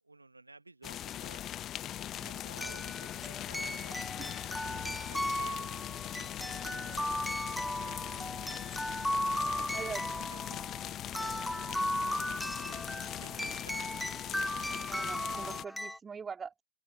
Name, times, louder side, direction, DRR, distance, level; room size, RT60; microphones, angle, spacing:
voice 1, 0.0-1.4 2.2-4.0 4.8-7.5 7.8-8.5 9.1-12.2 12.6-13.9, right 2 dB, 80° right, 1.7 m, -55 dB
sound 1, 0.8-15.6, left 12 dB, 30° left, 1.1 m, -40 dB
sound 2, 1.1-1.2 2.6-16.0, left 1 dB, ahead, 0.8 m, -36 dB
voice 2, 9.7-10.1 11.3-11.4 14.9-16.6, right 6 dB, 15° right, 2.6 m, -43 dB
open air
figure-of-eight pair, 90°, 0 cm